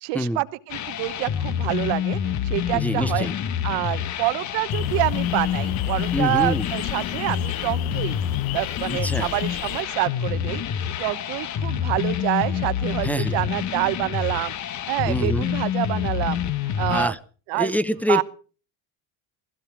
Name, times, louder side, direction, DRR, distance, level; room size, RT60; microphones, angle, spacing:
voice 1, 0.0-2.2 2.4-3.3 3.6-8.2 8.5-14.5 14.9-16.4 16.8-17.1 17.5-17.7 18.1-18.2, right 20 dB, 85° right, 13 dB, 1.2 m, -27 dB
sound 1, 0.7-17.1, left 9 dB, 45° left, 1.2 m, -27 dB
voice 2, 2.7-3.3 6.1-6.7 8.9-9.3 13.0-13.4 15.1-15.5 16.9-17.2 17.5-18.2, left 1 dB, 5° left, 11 dB, 0.7 m, -25 dB
sound 2, 4.7-9.8, left 16 dB, 65° left, 0.9 m, -34 dB
18.0 x 15.5 x 4.6 m, 0.39 s
cardioid pair, 120°, 39 cm